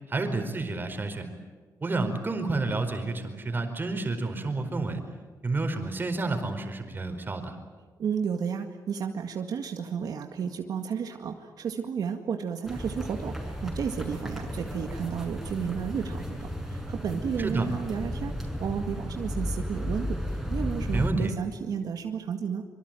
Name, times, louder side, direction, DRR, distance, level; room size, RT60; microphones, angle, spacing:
voice 1, 0.1-1.3 1.8-5.0 5.4-7.6 17.4-17.7 20.9-21.3, right 3 dB, 30° right, 6 dB, 4.6 m, -29 dB
voice 2, 8.0-16.4 16.7-22.6, right 7 dB, 75° right, 4 dB, 2.0 m, -32 dB
sound 1, 12.7-21.1, equal, ahead, 6.6 m, -34 dB
25.5 x 24.5 x 9.1 m, 1.4 s
cardioid pair, 115°, 7 cm